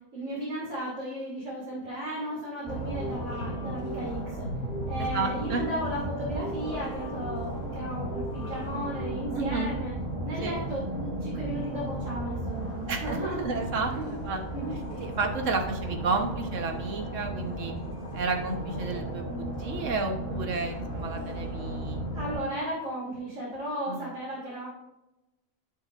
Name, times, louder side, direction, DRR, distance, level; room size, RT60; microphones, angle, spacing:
voice 1, 0.1-4.5 4.9-9.9 10.2-13.5 13.9-14.2 14.5-15.0 22.1-24.7, right 1 dB, 85° right, -7 dB, 3.2 m, -35 dB
sound 1, 2.6-22.4, right 1 dB, 25° left, 3.1 m, -35 dB
sound 2, 2.9-9.8, equal, 40° left, 3.4 m, -42 dB
voice 2, 5.0-5.6 9.3-9.7 10.4-10.6 12.9-14.4 15.0-17.7 18.1-22.0 23.9-24.1, right 3 dB, 65° right, 4 dB, 1.5 m, -32 dB
11.0 x 6.4 x 2.5 m, 0.93 s
omnidirectional pair, 1.4 m